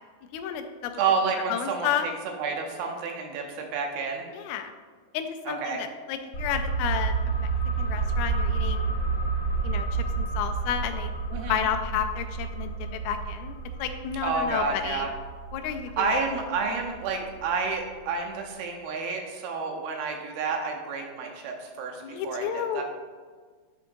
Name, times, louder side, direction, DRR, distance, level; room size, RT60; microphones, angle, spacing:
voice 1, 0.3-0.9 1.5-2.1 4.3-4.7 5.1-7.5 7.8-8.9 9.6-11.1 11.5-12.7 13.0-15.1 15.5-16.1 22.0-22.8, left 9 dB, 90° left, 7 dB, 2.5 m, -31 dB
voice 2, 1.0-2.1 2.4-4.3 5.5-5.8 11.3-11.6 14.2-15.1 16.0-22.8, right 4 dB, 80° right, 2 dB, 2.3 m, -30 dB
sound 1, 6.3-17.7 18.0-18.1, right 4 dB, 70° left, 1.1 m, -30 dB
10.5 x 3.7 x 2.6 m, 1.5 s
omnidirectional pair, 4.4 m